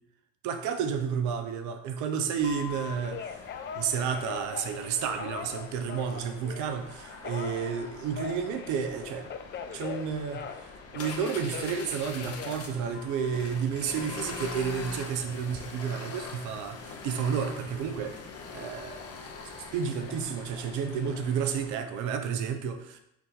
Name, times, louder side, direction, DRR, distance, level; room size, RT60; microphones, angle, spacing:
voice 1, 0.4-3.4 3.7-9.3 9.7-18.2 18.5-19.1 19.7-23.0, right 7 dB, 75° right, 7 dB, 0.6 m, -31 dB
sound 1, 2.4-21.7, left 4 dB, 55° left, 0.8 m, -44 dB
Telephone, 2.4-6.8 7.2-10.7 10.9-13.4 13.9-14.5, left 7 dB, 35° left, 0.4 m, -41 dB
4.6 x 2.6 x 3.9 m, 0.80 s
supercardioid pair, 60°, 30 cm